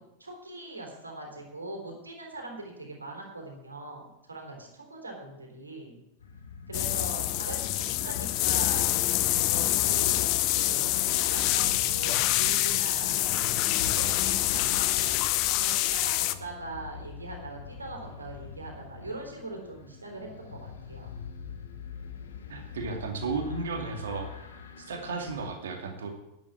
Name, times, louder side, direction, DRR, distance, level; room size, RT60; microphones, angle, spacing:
voice 1, 0.0-6.0 6.7-8.9 9.3-13.3 13.6-15.2 15.6-21.1, right 2 dB, 80° right, 1 dB, 3.8 m, -41 dB
sound 1, 6.2-25.5, left 6 dB, 65° left, 1.6 m, -44 dB
sound 2, 6.7-16.3, left 15 dB, 40° left, 0.8 m, -26 dB
voice 2, 22.5-24.5 24.8-26.1, right 4 dB, 65° right, 4 dB, 2.5 m, -34 dB
11.0 x 8.6 x 8.4 m, 0.89 s
figure-of-eight pair, 90°, 0 cm